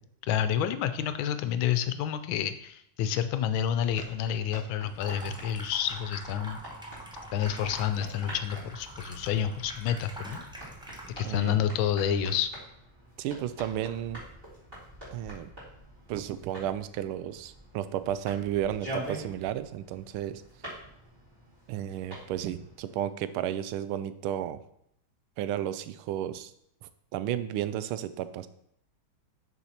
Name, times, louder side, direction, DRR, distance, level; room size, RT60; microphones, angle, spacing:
voice 1, 0.3-6.6 7.3-10.4 11.2-12.5, left 9 dB, 80° left, 11 dB, 1.3 m, -29 dB
sound 1, 3.9-23.1, right 1 dB, 25° right, 3.8 m, -46 dB
Water tap faucet / Sink (filling or washing), 4.9-11.4, right 1 dB, 5° right, 0.5 m, -45 dB
voice 2, 11.2-11.6 13.2-14.2 15.1-15.5 16.1-20.4 21.7-24.6 25.4-26.5 27.1-28.5, right 11 dB, 90° right, 13 dB, 1.4 m, -33 dB
6.8 x 4.7 x 5.7 m, 0.72 s
omnidirectional pair, 2.3 m